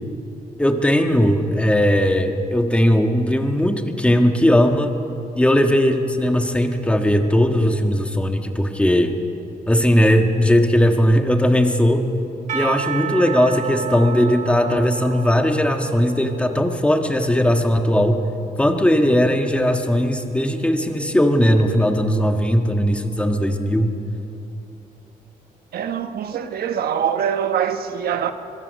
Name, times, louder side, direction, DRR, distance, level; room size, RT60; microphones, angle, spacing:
voice 1, 0.6-4.9 5.3-9.1 9.7-12.0 12.5-18.2 18.6-23.9, equal, 10° left, 1.6 m, -18 dB
Percussion / Church bell, 12.5-17.3, right 6 dB, 55° right, 2.4 m, -31 dB
voice 2, 25.7-28.3, right 8 dB, 85° right, 1.2 m, -23 dB
22.5 x 22.0 x 6.5 m
cardioid pair, 125°, 15 cm